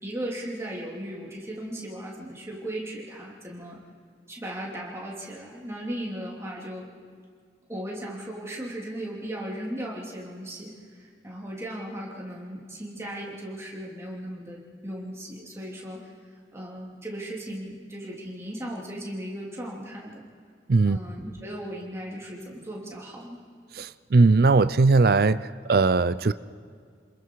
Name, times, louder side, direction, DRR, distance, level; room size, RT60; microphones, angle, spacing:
voice 1, 0.0-3.8 4.3-6.9 7.7-16.0 16.5-20.3 20.8-23.4, right 1 dB, 15° right, -3 dB, 3.1 m, -37 dB
voice 2, 23.8-25.4 25.7-26.3, right 3 dB, 55° right, 14 dB, 0.5 m, -19 dB
28.0 x 21.0 x 4.8 m, 2.1 s
head